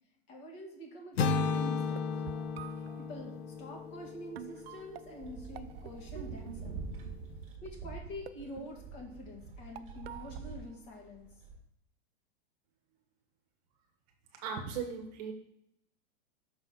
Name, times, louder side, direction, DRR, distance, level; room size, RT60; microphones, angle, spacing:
voice 1, 0.3-2.4 3.0-6.8 7.6-11.3, left 1 dB, 35° left, 1 dB, 2.0 m, -46 dB
sound 1, 1.2-5.2, left 4 dB, 80° left, 0.8 m, -34 dB
sound 2, 1.8-3.1 4.1-4.2 4.4-7.1 7.7-8.0 8.3-9.3 9.8-10.8, right 12 dB, 80° right, 0.5 m, -49 dB
sound 3, 2.5-2.7 4.7-11.6, right 4 dB, 20° right, 1.8 m, -46 dB
voice 2, 14.3-15.3, right 6 dB, 40° right, 3 dB, 1.2 m, -38 dB
6.1 x 4.1 x 5.6 m, 0.74 s
supercardioid pair, 160°, 31 cm